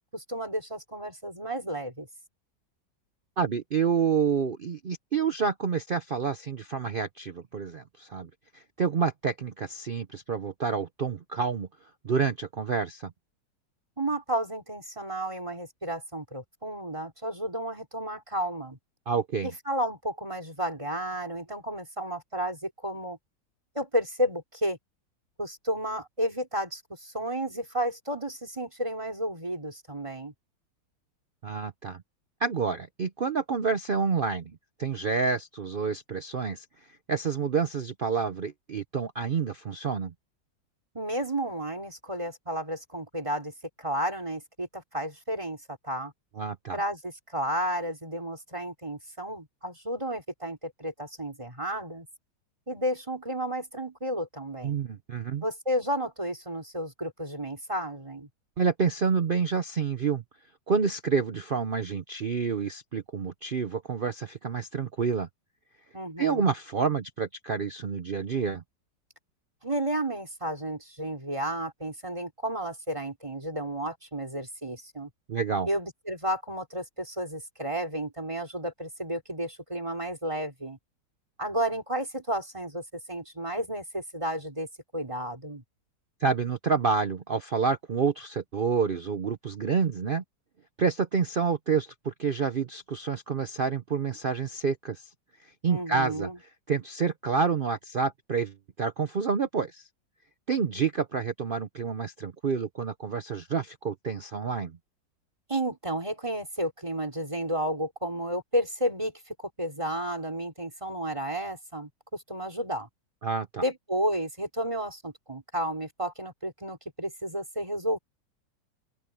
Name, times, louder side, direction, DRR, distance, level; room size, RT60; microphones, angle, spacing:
voice 1, 0.1-2.1 14.0-18.8 19.4-23.2 23.7-24.8 25.4-30.3 40.9-46.1 46.7-52.1 52.7-54.8 55.4-58.3 65.9-66.5 69.6-75.1 75.7-80.8 81.4-84.7 84.9-85.6 95.7-96.4 105.5-112.9 113.6-118.0, right 1 dB, 15° right, 3.2 m, -32 dB
voice 2, 3.4-11.7 12.0-13.1 19.1-19.5 31.4-32.0 32.4-34.5 34.8-36.6 37.1-40.1 46.4-46.8 54.6-55.4 58.6-60.2 60.7-65.3 66.2-68.6 75.3-75.7 86.2-90.2 90.8-95.1 95.4-96.3 96.7-99.9 100.5-104.8 113.2-113.6, right 5 dB, 75° right, 0.4 m, -28 dB
open air
omnidirectional pair, 2.0 m